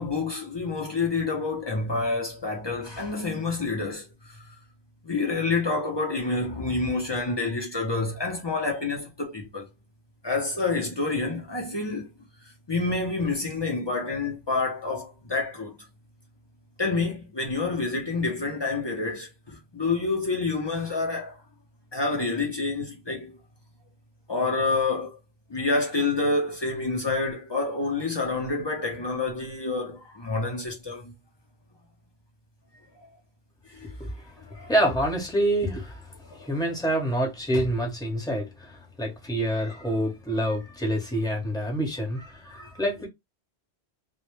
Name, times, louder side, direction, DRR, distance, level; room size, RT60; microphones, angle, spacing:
voice 1, 0.0-4.4 5.0-9.7 10.2-12.1 12.7-15.8 16.8-21.4 21.9-23.4 24.3-25.2 25.5-31.1 33.7-34.0 34.5-34.7 36.3-36.5, left 3 dB, 40° left, 0.4 m, -28 dB
voice 2, 34.7-36.0 36.3-43.1, right 1 dB, 5° left, 0.8 m, -27 dB
2.1 x 2.0 x 2.9 m
omnidirectional pair, 1.1 m